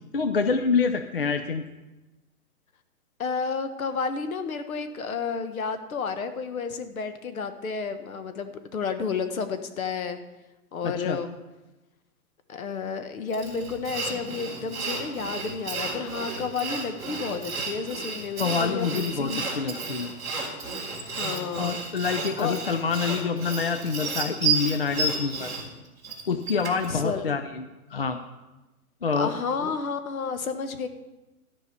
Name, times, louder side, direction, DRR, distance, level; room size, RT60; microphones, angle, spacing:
voice 1, 0.1-1.6 10.8-11.2 18.4-20.1 21.6-25.5 26.3-27.7 27.9-28.2 29.0-29.3 29.6-29.7, left 5 dB, 40° left, 8 dB, 0.4 m, -27 dB
voice 2, 3.2-10.2 10.7-11.3 12.5-19.4 21.1-21.8 22.4-22.6 26.9-27.2 29.2-30.9, left 5 dB, 65° left, 9 dB, 1.4 m, -31 dB
Sawing, 13.3-26.9, right 4 dB, 5° right, 2.1 m, -32 dB
13.5 x 5.5 x 8.0 m, 1.1 s
hypercardioid pair, 175°, 45 cm